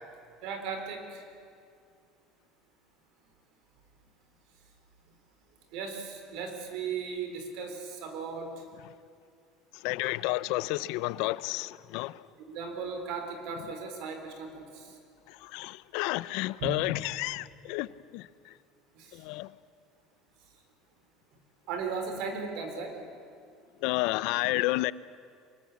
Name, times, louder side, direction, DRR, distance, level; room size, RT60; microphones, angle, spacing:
voice 1, 0.4-1.2 5.7-8.6 12.4-14.9 16.6-16.7 19.0-19.1 21.7-23.0, right 5 dB, 60° right, 4.0 m, -36 dB
voice 2, 9.8-12.1 15.4-17.9 18.1-18.2 19.2-19.5 23.8-24.9, left 19 dB, 65° left, 0.5 m, -30 dB
23.5 x 20.5 x 8.5 m
cardioid pair, 170°, 0 cm